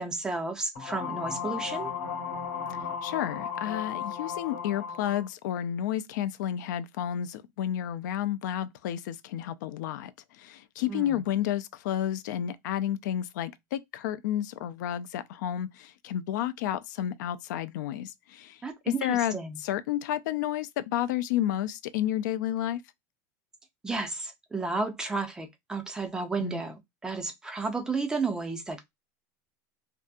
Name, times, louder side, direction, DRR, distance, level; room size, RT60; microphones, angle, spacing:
voice 1, 0.0-1.9 10.9-11.1 18.6-19.6 23.8-28.8, right 3 dB, 5° right, 0.3 m, -32 dB
sound 1, 0.8-5.3, left 7 dB, 45° left, 1.0 m, -35 dB
voice 2, 3.0-10.1 10.4-18.6 18.9-19.4 19.6-22.8 26.4-26.6, left 11 dB, 80° left, 0.4 m, -31 dB
2.6 x 2.5 x 2.2 m
supercardioid pair, 180°, 10 cm